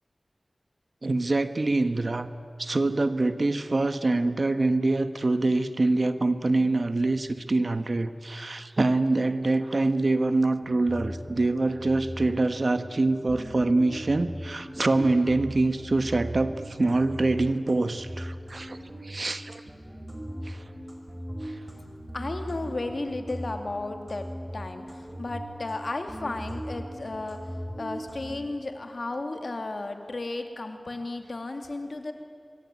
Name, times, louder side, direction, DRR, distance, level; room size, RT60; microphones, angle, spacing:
voice 1, 1.0-2.3 2.6-18.8 19.0-19.6 20.5-20.6, right 2 dB, 60° right, 11 dB, 1.3 m, -25 dB
sound 1, 10.6-13.0 13.3-19.4 19.7-25.8 26.1-28.3, equal, 20° right, 5.1 m, -39 dB
voice 2, 22.1-27.5 27.8-32.1, left 2 dB, 70° left, 6 dB, 2.7 m, -34 dB
25.5 x 22.5 x 9.7 m, 2.1 s
wide cardioid pair, 60°, 0 cm